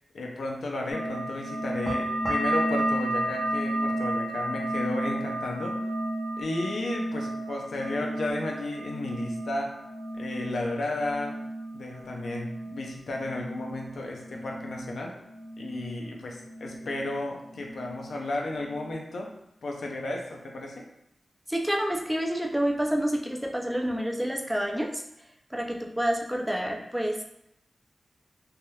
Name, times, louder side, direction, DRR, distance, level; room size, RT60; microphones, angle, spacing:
voice 1, 0.1-5.8 6.4-9.7 10.1-11.3 11.7-15.1 15.6-19.3 19.6-20.9, left 2 dB, 85° left, 0 dB, 0.5 m, -33 dB
sound 1, 0.9-16.1 16.3-17.1 17.4-18.1 18.5-18.9, right 1 dB, 20° left, 0.9 m, -33 dB
voice 2, 21.5-25.0 25.5-27.2, equal, 5° right, 0 dB, 0.4 m, -28 dB
3.3 x 2.8 x 2.2 m, 0.78 s
wide cardioid pair, 85°, 0 cm